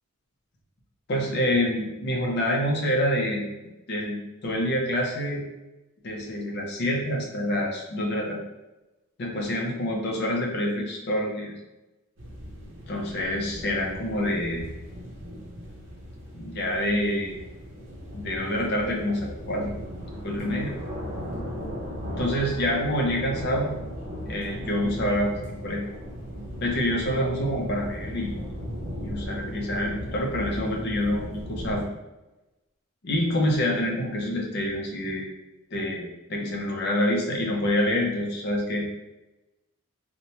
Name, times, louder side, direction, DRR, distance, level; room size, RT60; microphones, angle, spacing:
voice 1, 1.1-3.4 3.9-4.2 4.4-5.4 6.0-8.4 9.2-11.5 12.9-14.6 16.3-17.4 18.1-19.7 20.2-20.8 22.2-23.7 24.3-25.9 26.6-28.3 29.0-31.8 33.0-35.3 35.7-38.9, left 1 dB, 50° left, -1 dB, 0.5 m, -27 dB
sound 1, 12.2-31.8, equal, 55° right, 0.6 m, -37 dB
2.9 x 2.1 x 2.8 m, 1.0 s
head